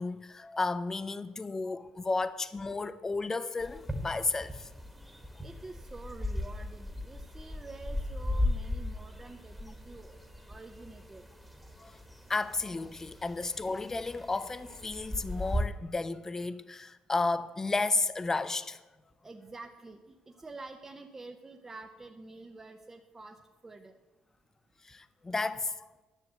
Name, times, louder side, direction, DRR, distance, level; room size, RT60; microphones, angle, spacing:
voice 1, 0.0-4.7 11.8-11.9 12.3-18.8 24.9-26.0, left 3 dB, 25° left, 0.6 m, -33 dB
sound 1, 3.6-15.6, left 1 dB, ahead, 1.3 m, -37 dB
voice 2, 5.4-10.2 10.5-11.2 19.2-23.9, right 3 dB, 20° right, 0.7 m, -48 dB
11.0 x 6.7 x 7.9 m
cardioid pair, 95°, 2 cm